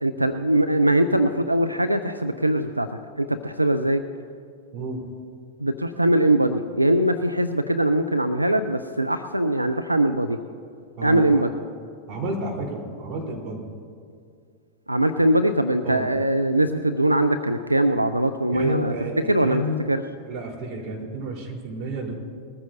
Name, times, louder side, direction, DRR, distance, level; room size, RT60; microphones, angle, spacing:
voice 1, 0.0-2.9 3.2-4.0 5.6-10.4 11.0-11.5 14.9-18.9 19.3-19.6 19.9-20.0, right 1 dB, 85° right, 9 dB, 0.5 m, -21 dB
voice 2, 4.7-5.0 11.0-11.4 12.1-13.6 15.8-16.1 18.5-19.8 20.3-22.1, right 1 dB, 35° right, -1 dB, 3.8 m, -31 dB
21.0 x 14.0 x 2.7 m, 2.3 s
figure-of-eight pair, 90°, 0 cm